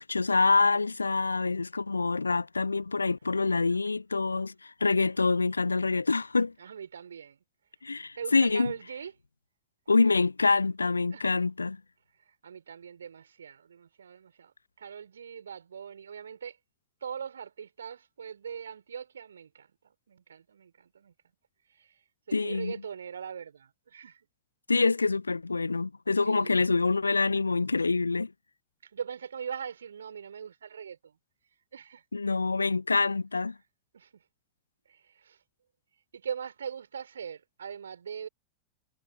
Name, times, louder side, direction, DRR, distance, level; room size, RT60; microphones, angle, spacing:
voice 1, 0.0-6.5 7.8-8.7 9.9-11.8 22.3-22.8 24.7-28.3 32.1-33.6, left 3 dB, 80° left, 0.7 m, -26 dB
voice 2, 6.6-7.4 8.1-9.1 11.1-11.4 12.4-16.6 17.0-21.1 21.7-22.0 22.3-24.3 26.2-26.7 28.8-31.2 31.7-32.0 33.9-34.2 34.9-35.4 36.1-38.3, right 7 dB, 70° right, 5.2 m, -41 dB
figure-of-eight pair, 90°, 0 cm